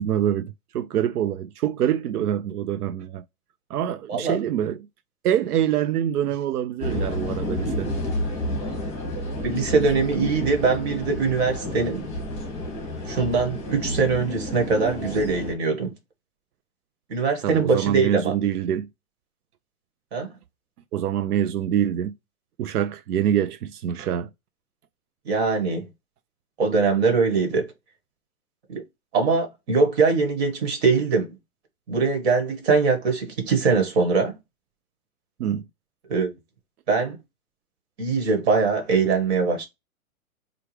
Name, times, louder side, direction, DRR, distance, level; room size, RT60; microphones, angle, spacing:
voice 1, 0.0-3.2 3.7-4.9 5.2-8.0 17.4-18.9 20.9-22.1 22.6-24.3 35.4-35.6, right 10 dB, 90° right, 0.5 m, -25 dB
sound 1, 6.8-15.5, left 1 dB, 15° left, 1.6 m, -30 dB
voice 2, 9.4-12.0 13.1-15.9 17.1-18.3 20.1-20.3 25.2-25.9 26.6-27.7 28.7-28.8 29.1-31.3 31.9-34.3 36.1-36.3 36.9-37.2 38.0-39.7, right 4 dB, 45° right, 1.6 m, -22 dB
4.6 x 2.4 x 3.2 m
hypercardioid pair, 155°, 44 cm